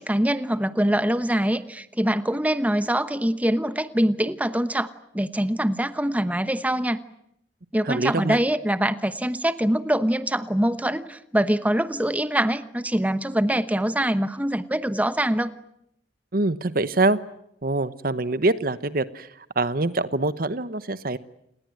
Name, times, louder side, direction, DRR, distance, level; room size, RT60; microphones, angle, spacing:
voice 1, 0.0-4.9 5.1-7.0 7.7-15.5, right 1 dB, 10° right, 12 dB, 1.0 m, -24 dB
voice 2, 7.9-8.4 16.3-17.2 17.6-19.3 19.6-21.2, right 2 dB, 55° right, 14 dB, 1.0 m, -24 dB
28.5 x 20.0 x 9.1 m, 0.76 s
head